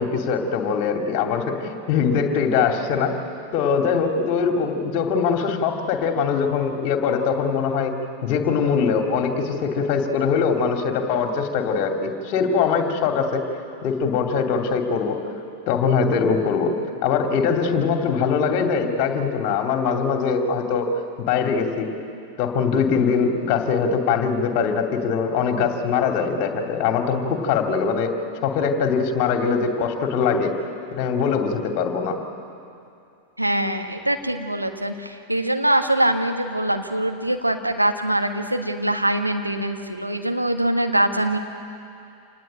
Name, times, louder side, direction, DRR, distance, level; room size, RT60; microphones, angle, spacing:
voice 1, 0.0-3.1 3.5-7.9 8.2-13.4 13.8-15.2 15.7-16.7 17.0-20.9 21.3-21.9 22.4-28.1 28.4-30.5 30.9-32.2, left 6 dB, 45° left, 4 dB, 2.8 m, -22 dB
voice 2, 33.4-41.4, right 1 dB, 85° right, 5 dB, 1.5 m, -23 dB
27.0 x 19.0 x 8.9 m, 2.6 s
figure-of-eight pair, 90°, 0 cm